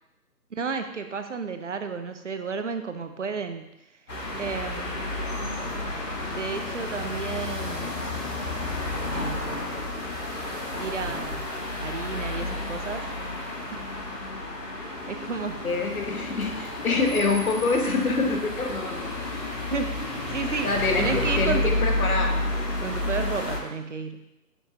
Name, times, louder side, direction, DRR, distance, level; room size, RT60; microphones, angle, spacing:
voice 1, 0.5-3.7 4.4-5.2 6.3-8.0 9.1-9.8 10.8-11.5 11.8-13.1 13.7-13.8 14.8-15.7 19.7-21.7 22.8-24.3, right 5 dB, 50° right, 8 dB, 0.7 m, -32 dB
sound 1, 4.1-23.6, left 2 dB, 80° left, 2.5 m, -31 dB
voice 2, 15.6-19.0 20.6-22.4, left 3 dB, 60° left, 2 dB, 1.6 m, -26 dB
9.5 x 7.2 x 2.8 m, 0.91 s
figure-of-eight pair, 150°, 49 cm